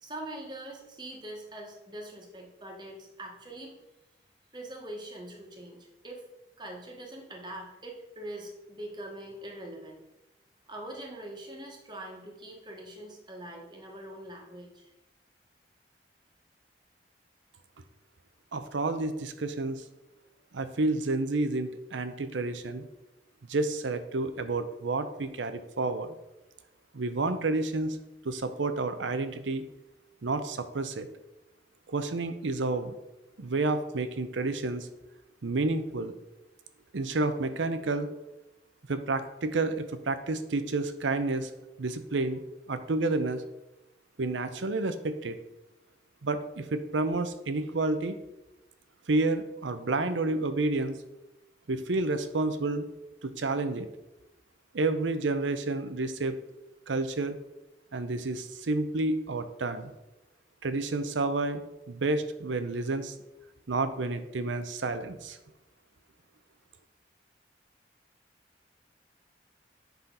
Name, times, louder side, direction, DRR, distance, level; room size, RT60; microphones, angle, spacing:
voice 1, 0.0-3.8 4.5-6.3 6.6-10.0 10.7-14.9, right 1 dB, 25° right, 0 dB, 1.2 m, -43 dB
voice 2, 18.5-19.8 20.5-22.9 23.5-26.1 26.9-28.0 28.2-29.6 30.2-31.1 31.9-32.9 33.4-34.9 35.4-36.1 36.9-38.1 38.9-41.5 41.8-42.4 42.7-43.4 44.2-45.4 46.2-48.2 49.1-51.0 51.7-52.9 53.2-53.9 54.7-56.4 56.9-57.4 57.9-59.9 60.6-63.2 63.7-65.4, right 2 dB, 90° right, 10 dB, 0.7 m, -30 dB
8.1 x 5.7 x 3.9 m, 0.96 s
head